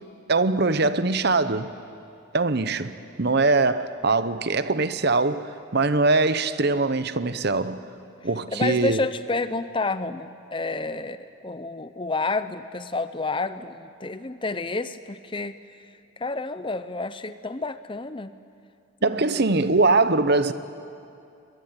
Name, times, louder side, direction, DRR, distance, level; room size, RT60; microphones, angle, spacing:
voice 1, 0.3-1.7 2.3-7.8 8.2-9.0 19.0-20.5, right 3 dB, 50° right, 0.9 m, -22 dB
voice 2, 8.5-15.5 16.2-18.3 19.3-19.8, left 3 dB, 25° left, 0.6 m, -30 dB
23.5 x 22.0 x 9.7 m
head